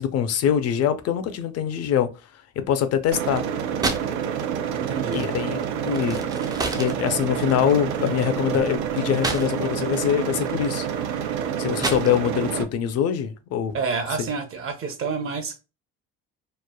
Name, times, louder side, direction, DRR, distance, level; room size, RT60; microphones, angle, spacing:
voice 1, 0.0-2.1 2.6-3.5 5.1-6.3 6.7-10.9 11.6-13.8 14.2-14.3, left 9 dB, 55° left, 0.5 m, -24 dB
sound 1, 3.0-4.2 4.5-9.9 10.2-12.5, right 3 dB, 15° right, 0.3 m, -32 dB
sound 2, 3.1-12.6, right 8 dB, 80° right, 0.5 m, -28 dB
voice 2, 4.7-5.3 13.7-15.6, right 5 dB, 45° right, 0.7 m, -29 dB
3.1 x 2.0 x 2.2 m
cardioid pair, 95°, 30 cm